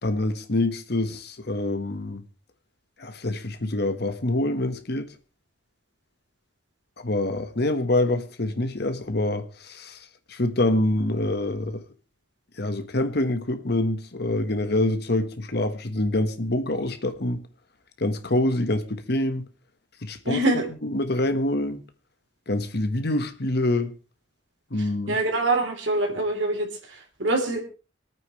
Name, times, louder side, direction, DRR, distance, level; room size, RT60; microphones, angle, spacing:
voice 1, 0.0-2.2 3.0-5.1 7.0-11.8 12.6-17.4 18.0-19.5 20.0-20.4 20.8-21.8 22.5-23.9 24.7-25.2, left 1 dB, 60° left, 1.3 m, -26 dB
voice 2, 20.2-20.7 25.1-27.6, right 2 dB, 80° right, 3.5 m, -24 dB
26.0 x 9.1 x 3.2 m
head